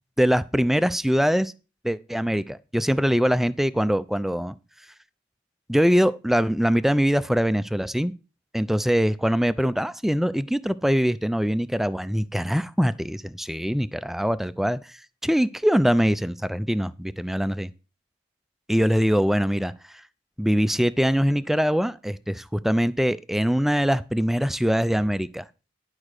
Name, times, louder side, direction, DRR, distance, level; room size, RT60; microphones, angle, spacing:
voice 1, 0.2-1.5 1.8-4.5 5.7-8.1 8.5-17.7 18.7-19.7 20.4-25.4, equal, ahead, 0.4 m, -23 dB
11.0 x 4.8 x 6.5 m
head